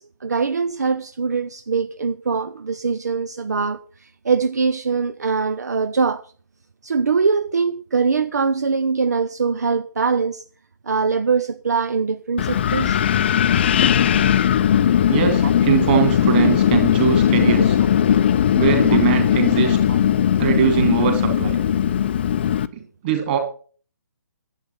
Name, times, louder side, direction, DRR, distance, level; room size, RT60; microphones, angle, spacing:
voice 1, 0.0-6.3 6.8-10.4 10.8-13.0 19.9-20.0, right 5 dB, 60° right, 0.6 m, -22 dB
Wind, 12.4-22.7, left 9 dB, 35° left, 0.6 m, -18 dB
voice 2, 15.1-17.8 18.5-19.8 20.4-21.6 22.7-23.4, right 9 dB, 30° right, 3.1 m, -21 dB
11.0 x 8.2 x 5.7 m
figure-of-eight pair, 135°, 10 cm